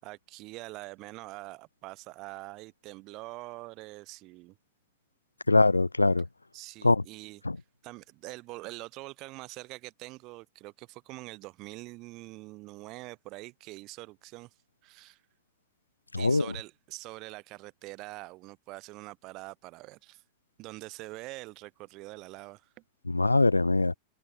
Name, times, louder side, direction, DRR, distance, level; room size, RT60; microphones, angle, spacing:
voice 1, 0.0-4.6 6.5-7.4 7.8-14.5 14.8-15.2 16.2-20.2 20.6-22.8, right 21 dB, 40° right, 5.7 m, -44 dB
voice 2, 5.5-6.2 6.8-7.0 16.1-16.4 23.1-23.9, left 2 dB, 80° left, 0.5 m, -22 dB
figure-of-eight pair, 90°, 0 cm